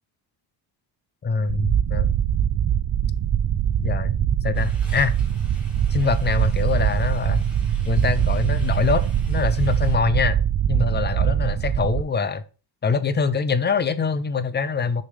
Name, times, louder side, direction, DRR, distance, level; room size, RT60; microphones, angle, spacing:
voice 1, 1.2-2.1 3.8-5.2 5.9-7.5 7.9-10.4 10.7-12.4 12.8-15.0, left 5 dB, 25° left, 12 dB, 0.5 m, -24 dB
sound 1, 1.5-12.0, right 9 dB, 35° right, 0.4 m, -22 dB
sound 2, 4.5-10.0, equal, ahead, 1.7 m, -48 dB
6.4 x 3.2 x 5.5 m, 0.34 s
cardioid pair, 130°, 47 cm